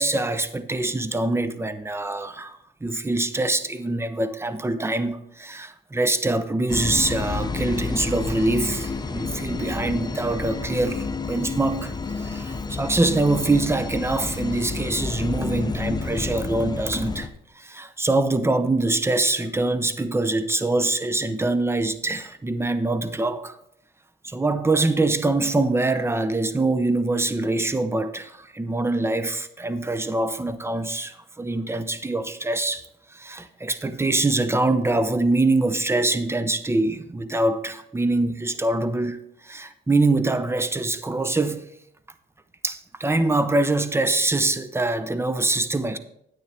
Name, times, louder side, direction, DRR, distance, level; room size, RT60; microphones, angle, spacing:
voice 1, 0.0-17.3 17.6-23.6 24.2-32.8 33.1-41.7 42.6-46.0, right 2 dB, 10° right, 0.7 m, -24 dB
sound 1, 6.7-17.3, left 4 dB, 20° left, 0.6 m, -30 dB
9.7 x 8.8 x 3.4 m
cardioid pair, 90°, 20 cm